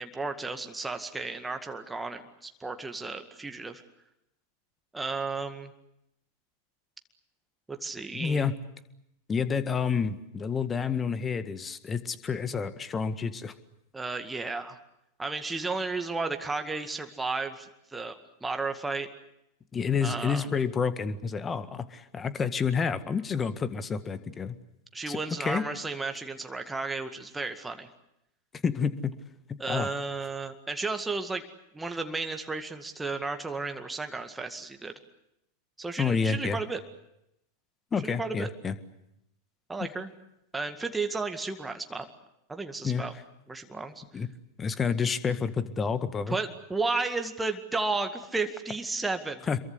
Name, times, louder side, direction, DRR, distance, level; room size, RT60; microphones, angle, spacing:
voice 1, 0.0-3.8 4.9-5.7 7.7-8.5 13.9-14.8 15.2-19.1 20.0-20.5 24.9-27.9 29.6-31.4 31.7-34.9 35.8-36.8 38.0-38.5 39.7-40.1 40.5-42.1 42.5-43.1 43.5-44.3 46.3-49.5, right 3 dB, 10° right, 6 dB, 2.0 m, -33 dB
voice 2, 8.1-8.5 9.3-13.5 19.7-24.5 25.1-25.6 28.6-29.1 29.7-29.9 36.0-36.6 37.9-38.7 39.8-39.9 42.8-43.0 44.1-44.3 44.6-46.4 49.5-49.6, left 6 dB, 20° left, 13 dB, 1.7 m, -29 dB
27.5 x 23.0 x 8.2 m, 0.83 s
figure-of-eight pair, 90°, 0 cm